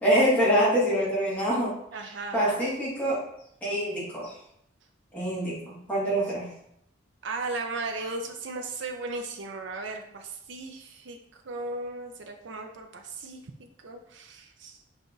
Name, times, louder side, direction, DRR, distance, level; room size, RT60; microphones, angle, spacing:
voice 1, 0.0-1.7 2.3-3.2 3.6-4.3 5.1-6.5, equal, 10° left, -8 dB, 1.7 m, -25 dB
voice 2, 1.9-2.6 6.3-6.4 7.2-11.2 11.5-14.8, right 3 dB, 65° right, 4 dB, 0.5 m, -36 dB
5.5 x 3.4 x 2.6 m, 0.75 s
head